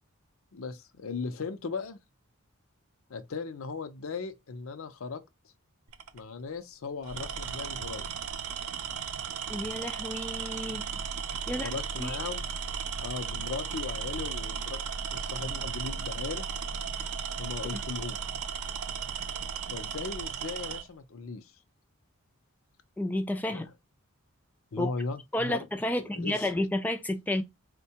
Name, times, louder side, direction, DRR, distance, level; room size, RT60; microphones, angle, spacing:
voice 1, 0.5-2.0 3.1-5.2 6.1-8.1 11.5-12.5 13.0-14.8 15.1-16.5 17.4-18.2 19.7-21.5 23.5-23.6 24.7-25.7 26.0-26.5, left 4 dB, 70° left, 0.5 m, -37 dB
Tools, 5.9-6.2 7.0-20.9, right 6 dB, 85° right, 0.5 m, -35 dB
voice 2, 9.5-10.8 11.5-11.7 12.0-12.2 17.7-17.8 23.0-23.7 24.8-24.9 25.3-27.4, left 1 dB, 10° left, 0.3 m, -31 dB
4.3 x 2.2 x 2.7 m
head